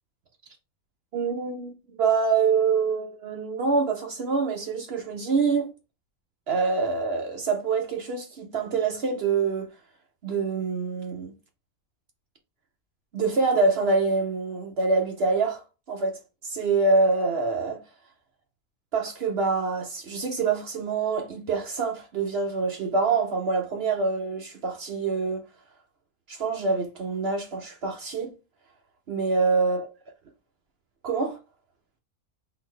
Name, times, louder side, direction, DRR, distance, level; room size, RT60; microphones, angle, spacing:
voice 1, 1.1-5.7 6.5-9.7 10.2-11.3 13.1-15.6 15.9-17.8 18.9-25.4 26.3-28.3 29.1-29.9 31.0-31.4, right 4 dB, 60° right, 0.7 m, -25 dB
3.9 x 2.4 x 3.2 m
omnidirectional pair, 1.5 m